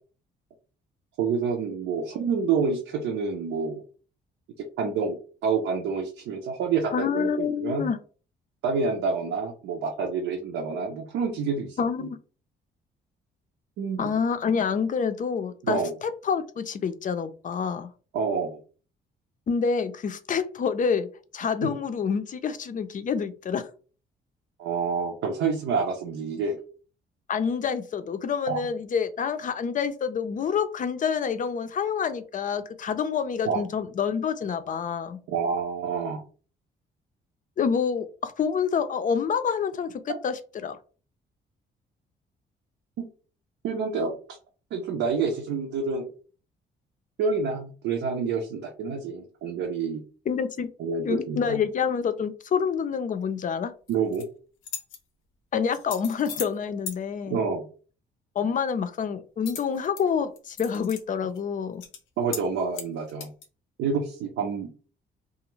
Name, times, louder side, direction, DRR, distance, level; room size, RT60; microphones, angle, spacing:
voice 1, 1.2-3.8 4.6-7.9 8.6-11.8 13.8-14.1 15.6-15.9 18.1-18.6 21.6-21.8 24.6-26.6 28.5-28.7 33.5-33.6 35.3-36.2 40.1-40.2 43.0-43.1 43.6-44.1 44.7-46.1 47.2-50.0 50.8-51.6 53.9-54.2 57.3-57.6 62.2-63.3 63.8-64.7, right 5 dB, 85° right, 0 dB, 0.6 m, -28 dB
voice 2, 6.9-8.0 11.8-12.2 14.0-17.9 19.5-23.7 27.3-35.2 37.6-40.8 50.3-50.7 51.0-53.7 55.5-57.4 58.4-61.8, left 6 dB, 40° left, 10 dB, 0.4 m, -27 dB
sound 1, 53.9-54.2 54.6-55.0 55.7-56.6 56.9-57.0 59.5-60.0 60.4-61.0 61.4-61.5 61.8-62.0 62.3-62.5 62.7-63.5, left 7 dB, 85° left, 0.6 m, -37 dB
2.4 x 2.4 x 3.0 m, 0.38 s
cardioid pair, 90°, 20 cm